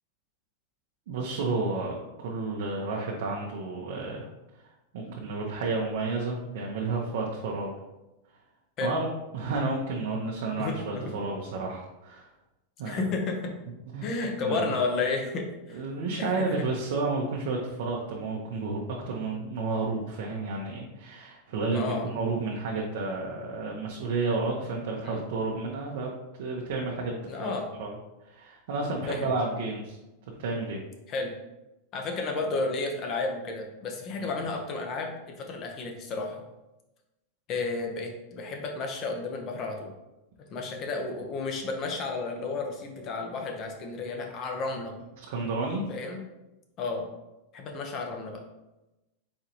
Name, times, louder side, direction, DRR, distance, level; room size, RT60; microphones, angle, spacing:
voice 1, 1.1-4.3 4.9-7.7 8.8-9.1 9.3-12.3 12.8-13.0 13.9-14.1 14.4-14.7 15.7-26.1 26.4-27.5 27.8-28.0 28.3-30.0 30.4-30.8 34.2-34.3 45.2-45.8, right 3 dB, 70° right, -2 dB, 0.8 m, -31 dB
voice 2, 10.6-11.0 12.8-13.5 14.0-15.8 16.2-16.5 21.7-22.1 25.0-25.2 27.2-27.7 29.1-29.3 31.1-31.3 31.9-36.4 37.5-39.9 40.5-44.9 45.9-46.2 46.8-47.1 47.5-48.4, left 3 dB, 40° left, 2 dB, 0.9 m, -32 dB
4.3 x 3.8 x 2.9 m, 0.98 s
supercardioid pair, 130°, 0 cm